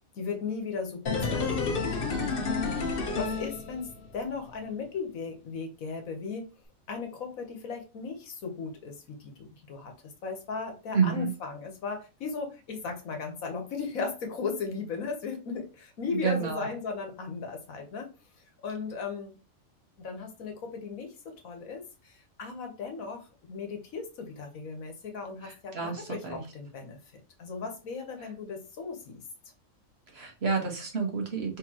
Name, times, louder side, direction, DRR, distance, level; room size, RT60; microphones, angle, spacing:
voice 1, 0.1-2.5 3.1-6.5 6.9-18.1 18.6-19.3 20.0-27.0 27.4-29.2, left 5 dB, 85° left, 4 dB, 1.5 m, -37 dB
sound 1, 1.1-4.2 4.5-4.6, left 4 dB, 45° left, 1.0 m, -30 dB
voice 2, 10.9-11.3 16.1-16.7 25.4-26.4 30.1-31.5, right 5 dB, 50° right, 2 dB, 1.3 m, -29 dB
4.4 x 3.7 x 2.9 m, 0.31 s
omnidirectional pair, 1.4 m